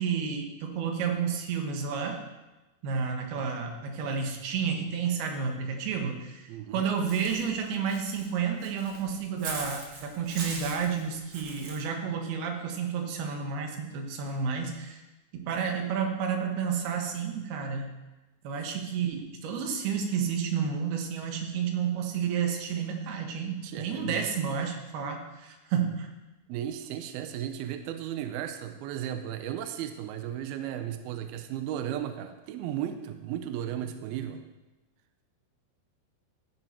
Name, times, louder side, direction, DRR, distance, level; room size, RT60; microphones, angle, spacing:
voice 1, 0.0-2.2 2.8-6.5 6.7-15.0 15.3-17.9 18.4-26.1, right 6 dB, 65° right, 3 dB, 3.0 m, -31 dB
voice 2, 6.5-6.8 23.6-24.3 26.5-34.4, right 10 dB, 85° right, 8 dB, 2.2 m, -35 dB
Walk footsteps / Bird, 7.0-11.8, right 3 dB, 50° right, 1.5 m, -41 dB
14.5 x 10.5 x 4.5 m, 1.1 s
omnidirectional pair, 5.4 m